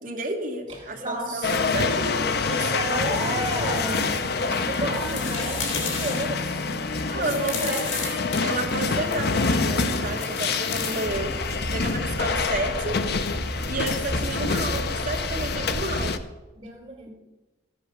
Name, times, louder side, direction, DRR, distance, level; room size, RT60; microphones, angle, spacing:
voice 1, 0.0-1.5 1.7-2.2 7.1-8.1 8.4-11.3 11.7-13.0 13.7-16.2, right 2 dB, 45° right, 2 dB, 1.8 m, -31 dB
voice 2, 0.7-2.0 2.5-6.7 7.1-7.8 16.5-17.1, right 1 dB, 25° right, -2 dB, 4.2 m, -32 dB
sound 1, 1.4-16.2, left 4 dB, 55° left, 0.7 m, -27 dB
sound 2, 4.2-9.3 10.2-11.6, left 5 dB, 90° left, 2.9 m, -35 dB
sound 3, 11.0-16.1, equal, 30° left, 2.2 m, -33 dB
13.5 x 8.4 x 6.2 m, 1.1 s
head